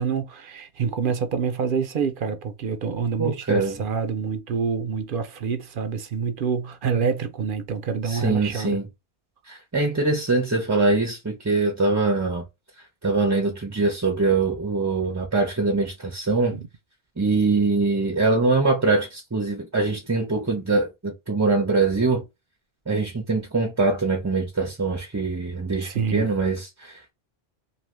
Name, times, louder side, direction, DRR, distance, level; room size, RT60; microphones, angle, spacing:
voice 1, 0.0-8.8 16.5-16.7 25.8-26.3, right 6 dB, 65° right, 0.7 m, -27 dB
voice 2, 3.2-3.8 8.0-8.9 9.5-12.4 13.0-16.6 17.2-22.2 22.9-27.1, right 3 dB, 20° right, 0.5 m, -23 dB
2.7 x 2.7 x 3.1 m
omnidirectional pair, 1.0 m